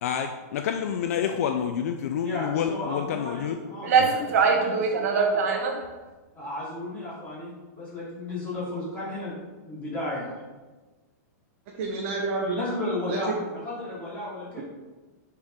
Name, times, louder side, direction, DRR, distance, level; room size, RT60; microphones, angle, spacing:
voice 1, 0.0-3.6 4.0-4.1, left 8 dB, 60° left, 6 dB, 0.5 m, -28 dB
voice 2, 2.2-5.8 6.3-9.4 9.6-10.4 12.5-14.6, left 2 dB, 15° left, -8 dB, 2.5 m, -34 dB
sound 1, 3.5-3.6 3.8-5.8, right 5 dB, 65° right, 1.2 m, -22 dB
voice 3, 11.7-12.6 13.1-13.4 14.6-14.7, right 3 dB, 45° right, -1 dB, 1.1 m, -29 dB
9.3 x 4.5 x 3.8 m, 1.2 s
supercardioid pair, 160°, 9 cm